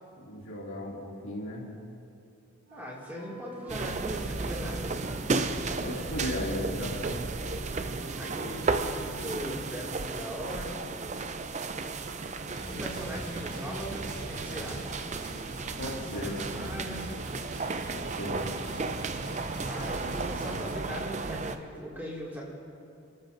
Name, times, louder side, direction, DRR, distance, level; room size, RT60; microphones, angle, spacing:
voice 1, 0.2-1.7 5.8-7.3 15.8-16.4 17.9-18.4, left 1 dB, 65° left, -3 dB, 2.6 m, -36 dB
voice 2, 2.7-4.9 8.2-10.7 12.7-14.9 16.1-17.1 18.4-18.5 19.6-22.4, equal, 10° right, -5 dB, 2.3 m, -39 dB
Wind instrument woodwind instrument, 2.7-10.2, right 2 dB, 75° right, 1.2 m, -51 dB
sound 1, 3.7-21.6, right 3 dB, 35° right, 0.5 m, -34 dB
sound 2, 12.5-20.7, right 1 dB, 55° right, 2.7 m, -42 dB
29.5 x 13.0 x 2.6 m, 2.6 s
head